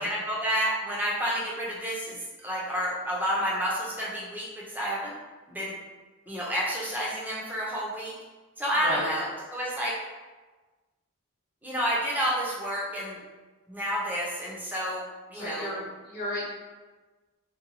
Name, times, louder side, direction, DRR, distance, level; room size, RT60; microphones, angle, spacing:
voice 1, 0.0-5.1 5.5-5.7 6.3-8.1 8.6-9.9 11.6-13.2 13.7-15.0 15.3-15.7, equal, 10° right, -5 dB, 0.5 m, -30 dB
voice 2, 8.7-9.1 15.3-16.5, left 1 dB, 45° left, -6 dB, 0.8 m, -33 dB
2.8 x 2.2 x 2.6 m, 1.3 s
head